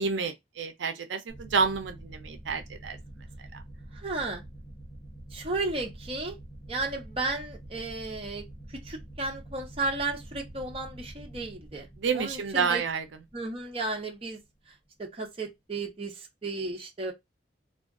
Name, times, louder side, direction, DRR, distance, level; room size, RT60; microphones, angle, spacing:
voice 1, 0.0-3.0 3.5-3.6 12.0-13.0, right 5 dB, 80° right, 0.5 m, -29 dB
sound 1, 1.3-14.5, right 1 dB, 35° left, 0.9 m, -46 dB
voice 2, 3.9-4.4 5.3-6.4 6.7-8.4 8.8-11.9 12.1-12.8 13.3-14.4 15.0-17.1, right 3 dB, 30° right, 0.7 m, -34 dB
2.4 x 2.3 x 3.5 m
head